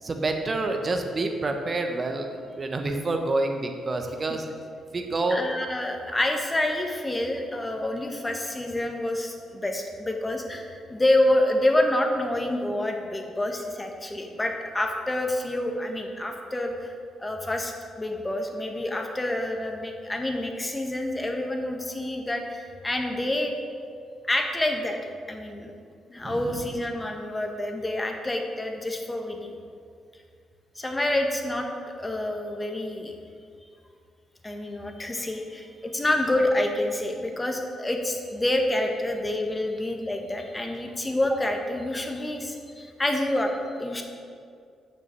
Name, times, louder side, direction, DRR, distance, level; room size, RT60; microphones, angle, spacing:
voice 1, 0.0-4.5 4.9-5.5 26.2-26.6, right 2 dB, 40° right, 5 dB, 1.2 m, -28 dB
voice 2, 5.3-16.9 17.2-23.5 24.3-25.0 25.3-25.7 26.1-29.5 30.7-31.7 32.0-33.1 34.4-44.0, left 1 dB, 20° left, 3 dB, 1.6 m, -27 dB
7.0 x 6.5 x 6.7 m, 2.3 s
hypercardioid pair, 45°, 0 cm